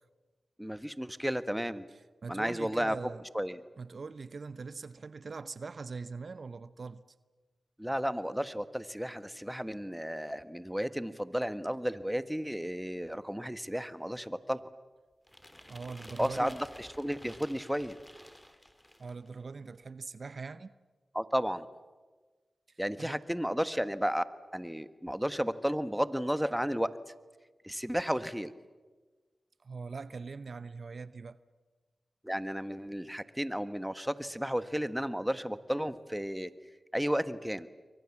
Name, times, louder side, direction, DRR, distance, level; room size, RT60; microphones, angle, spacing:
voice 1, 0.6-1.8 2.3-3.0 3.3-3.6 7.8-14.6 16.2-18.0 21.1-21.6 22.8-24.2 24.5-26.9 27.6-28.5 32.2-36.5 36.9-37.7, equal, 5° right, 1.5 m, -33 dB
voice 2, 2.2-3.3 3.8-7.0 15.7-16.5 19.0-20.8 23.0-23.2 29.6-31.4, right 4 dB, 65° right, 0.8 m, -42 dB
sound 1, 15.3-19.3, left 1 dB, 10° left, 2.7 m, -52 dB
29.5 x 23.5 x 7.4 m
cardioid pair, 40°, 0 cm